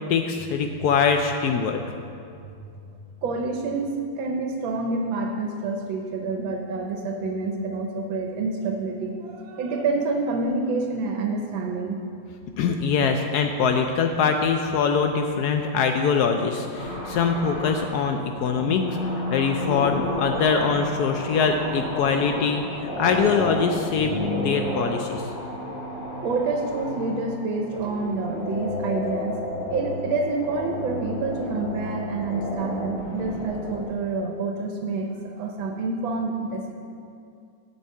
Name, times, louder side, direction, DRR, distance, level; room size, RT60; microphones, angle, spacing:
voice 1, 0.1-1.8 12.6-25.3, left 5 dB, 75° left, 5 dB, 0.9 m, -23 dB
voice 2, 3.2-12.0 26.2-29.4 29.7-36.7, right 3 dB, 80° right, 3 dB, 1.5 m, -28 dB
sound 1, 16.7-18.1 18.4-33.8, left 1 dB, 30° left, 2.1 m, -31 dB
8.0 x 5.4 x 7.4 m, 2.4 s
omnidirectional pair, 2.2 m